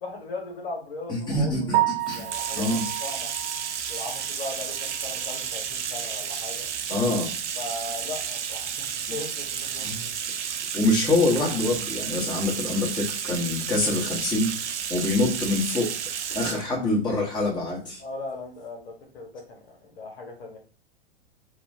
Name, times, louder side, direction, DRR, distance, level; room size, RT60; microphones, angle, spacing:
voice 1, 0.0-3.3 3.9-6.7 7.6-10.1 18.0-20.6, left 3 dB, 60° left, 1 dB, 1.1 m, -38 dB
voice 2, 1.1-2.3 2.6-2.9 6.9-7.3 9.8-10.0 10.7-15.9 16.3-18.0, left 2 dB, 15° left, -4 dB, 1.2 m, -25 dB
Piano, 1.7-5.7 6.0-6.2 6.7-6.8 7.1-7.2 10.3-10.4 18.9-19.1, right 17 dB, 45° right, 1.0 m, -31 dB
Bathtub (filling or washing), 2.0-16.7, right 8 dB, 85° right, 0.5 m, -32 dB
3.0 x 2.2 x 2.6 m, 0.40 s
hypercardioid pair, 105°, 34 cm